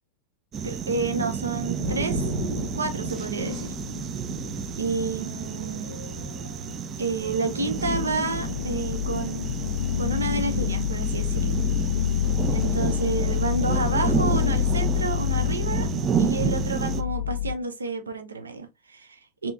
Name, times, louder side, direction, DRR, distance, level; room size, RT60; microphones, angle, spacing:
sound 1, 0.5-17.0, right 8 dB, 30° right, 0.3 m, -31 dB
voice 1, 0.6-2.2 2.5-3.6 4.8-6.0 7.0-11.6 12.5-15.9 16.2-19.5, right 3 dB, 75° right, 0.7 m, -30 dB
sound 2, 1.4-17.6, left 11 dB, 60° left, 0.3 m, -29 dB
4.3 x 2.9 x 2.5 m
figure-of-eight pair, 90°, 0 cm